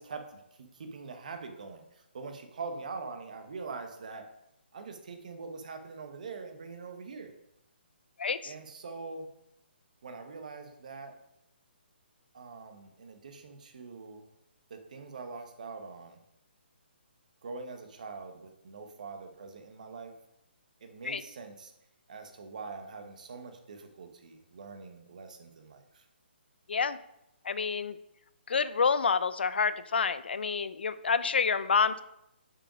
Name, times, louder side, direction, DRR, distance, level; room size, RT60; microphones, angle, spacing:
voice 1, 0.0-4.2 4.7-7.3 8.4-9.3 10.0-11.1 12.3-14.2 14.7-16.2 17.4-20.1 20.8-21.7 22.1-26.0, right 4 dB, 40° right, 6 dB, 0.8 m, -43 dB
voice 2, 8.2-8.5 21.0-21.2 26.7-27.0 27.4-28.0 28.5-32.0, left 5 dB, 65° left, 15 dB, 0.4 m, -28 dB
6.0 x 4.8 x 4.9 m, 0.84 s
hypercardioid pair, 175°, 6 cm